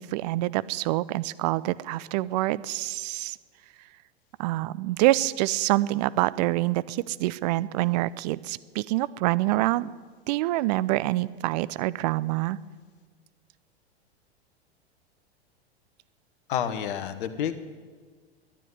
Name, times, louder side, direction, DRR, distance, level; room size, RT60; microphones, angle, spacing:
voice 1, 0.0-3.4 4.4-9.9 10.3-12.6, right 17 dB, 40° right, 18 dB, 0.5 m, -26 dB
voice 2, 16.5-17.5, left 9 dB, 50° left, 9 dB, 1.3 m, -29 dB
12.5 x 10.0 x 9.4 m, 1.5 s
figure-of-eight pair, 95°, 33 cm